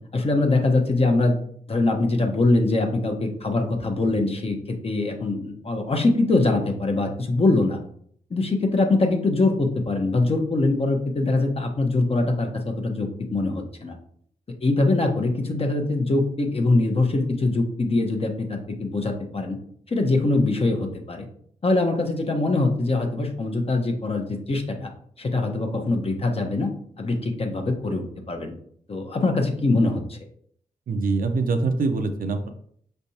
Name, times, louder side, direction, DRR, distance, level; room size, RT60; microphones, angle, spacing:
voice 1, 0.1-1.4 1.7-7.8 8.3-13.9 14.6-19.6 19.9-21.3 21.6-24.9 25.2-26.7 27.0-28.5 28.9-30.2, left 2 dB, 40° left, 3 dB, 0.9 m, -23 dB
voice 2, 30.9-32.5, right 3 dB, 70° right, 6 dB, 0.6 m, -24 dB
5.4 x 3.4 x 2.8 m, 0.63 s
cardioid pair, 70°, 15 cm